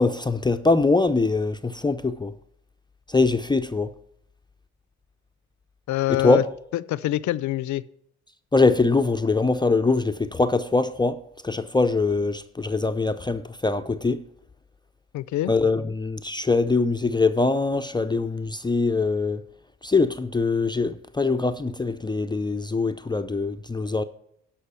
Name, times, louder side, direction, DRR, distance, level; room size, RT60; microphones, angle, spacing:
voice 1, 0.0-2.3 3.1-3.9 6.2-6.5 8.5-14.2 15.5-19.4 19.8-24.0, left 3 dB, 15° left, 0.5 m, -23 dB
voice 2, 5.9-6.4 6.7-7.8 15.1-15.5, left 15 dB, 70° left, 0.5 m, -25 dB
11.5 x 5.6 x 6.9 m
cardioid pair, 90°, 30 cm